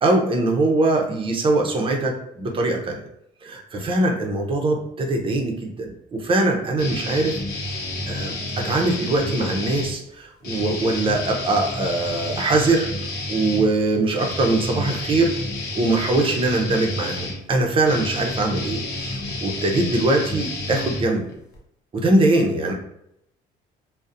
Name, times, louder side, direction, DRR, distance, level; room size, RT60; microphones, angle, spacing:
voice 1, 0.0-3.0 3.4-7.3 7.6-7.8 8.1-12.9 13.3-15.3 15.7-21.2 21.9-22.7, right 2 dB, 30° right, 2 dB, 0.5 m, -22 dB
sound 1, 6.8-9.9 10.4-21.6, left 2 dB, 70° left, 0.7 m, -30 dB
2.4 x 2.0 x 2.6 m, 0.79 s
cardioid pair, 110°, 17 cm